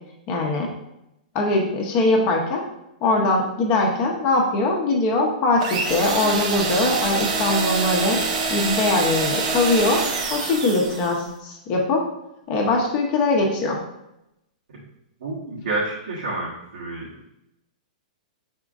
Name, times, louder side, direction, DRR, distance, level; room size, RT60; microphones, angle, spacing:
voice 1, 0.3-0.7 1.3-2.6 3.0-8.2 8.5-10.0 10.3-12.0 12.5-13.8, left 2 dB, 30° left, 0 dB, 0.7 m, -21 dB
sound 1, 5.6-11.2, right 4 dB, 50° right, 0.7 m, -25 dB
voice 2, 15.2-17.1, right 2 dB, 90° right, -7 dB, 1.2 m, -29 dB
4.9 x 4.4 x 2.4 m, 0.86 s
hypercardioid pair, 160°, 5 cm